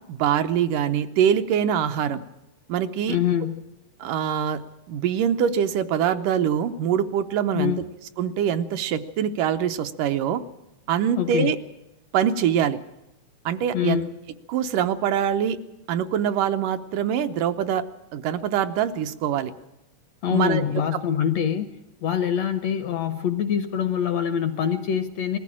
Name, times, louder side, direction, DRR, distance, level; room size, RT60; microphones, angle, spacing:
voice 1, 0.1-2.2 2.7-3.2 4.0-4.6 4.9-7.7 8.2-10.4 10.9-11.6 12.1-12.8 13.5-14.0 14.5-15.6 15.9-17.8 18.1-19.5 20.3-20.6 20.9-21.0, right 9 dB, 75° right, 8 dB, 2.4 m, -24 dB
voice 2, 3.1-3.6 7.5-7.8 11.2-11.5 13.7-14.1 20.2-21.7 22.0-25.4, left 9 dB, 70° left, 9 dB, 1.7 m, -24 dB
20.5 x 15.0 x 8.8 m, 0.93 s
omnidirectional pair, 3.9 m